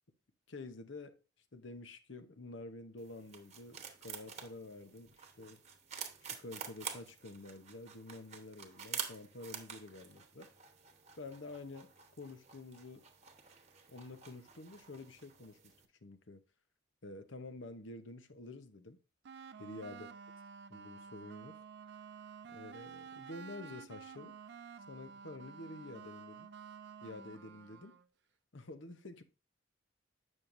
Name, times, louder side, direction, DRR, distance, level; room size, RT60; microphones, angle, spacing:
voice 1, 0.5-1.2 1.5-5.6 6.2-10.5 11.2-11.9 12.2-13.1 13.9-15.7 16.0-16.4 17.0-19.0 19.6-20.1 20.7-21.6 22.5-24.4 24.9-26.5 27.0-28.0 28.5-29.2, left 2 dB, 75° left, 0.9 m, -49 dB
sound 1, 3.0-15.9, right 7 dB, 35° right, 1.0 m, -49 dB
sound 2, 19.2-28.1, right 6 dB, 55° right, 0.4 m, -51 dB
8.8 x 6.3 x 2.6 m
head